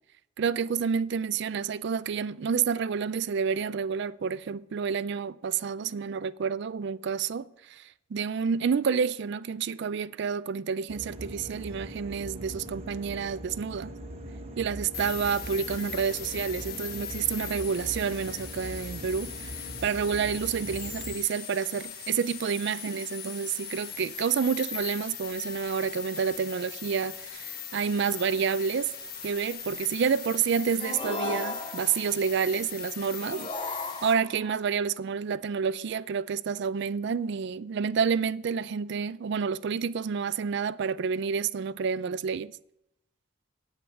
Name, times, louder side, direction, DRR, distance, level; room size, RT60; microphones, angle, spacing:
voice 1, 0.4-7.8 8.1-13.9 14.6-28.9 29.2-33.7 34.0-42.5, right 6 dB, 60° right, 0.4 m, -29 dB
sound 1, 10.9-21.2, right 1 dB, 30° right, 1.0 m, -41 dB
sound 2, 14.9-34.1, left 7 dB, 50° left, 1.4 m, -40 dB
sound 3, 30.8-32.1 33.2-34.5, left 3 dB, 25° left, 0.9 m, -36 dB
8.8 x 8.5 x 6.3 m
head